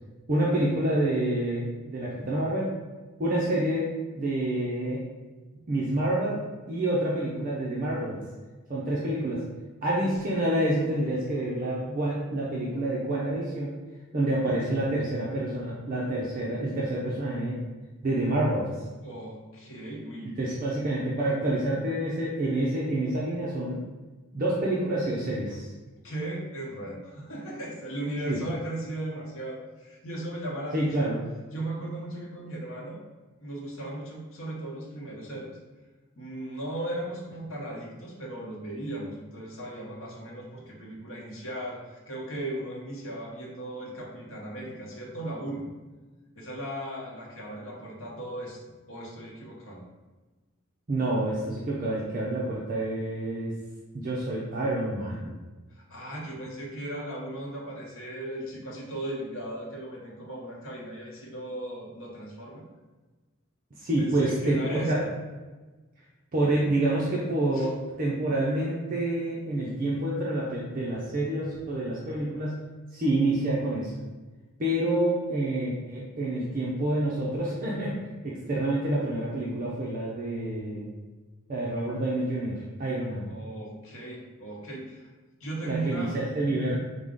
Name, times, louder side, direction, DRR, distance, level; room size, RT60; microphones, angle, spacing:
voice 1, 0.3-2.7 3.2-5.0 5.7-6.4 6.7-8.2 8.7-9.4 9.8-13.8 14.1-17.6 18.0-18.7 20.4-23.8 24.3-25.7 28.3-28.4 30.7-31.2 50.9-53.5 53.9-55.4 63.8-65.0 66.3-67.7 68.0-72.6 72.9-73.9 74.6-78.0 78.2-80.9 81.5-83.3 85.6-86.7, right 1 dB, 40° right, -5 dB, 0.6 m, -28 dB
voice 2, 19.0-20.4 26.0-31.1 31.5-33.0 33.4-35.6 36.2-45.7 46.4-48.6 48.9-49.8 55.7-62.6 64.0-65.1 67.5-67.7 83.2-85.1 85.4-86.1, right 1 dB, 75° left, -3 dB, 0.9 m, -37 dB
4.8 x 2.1 x 3.6 m, 1.3 s
head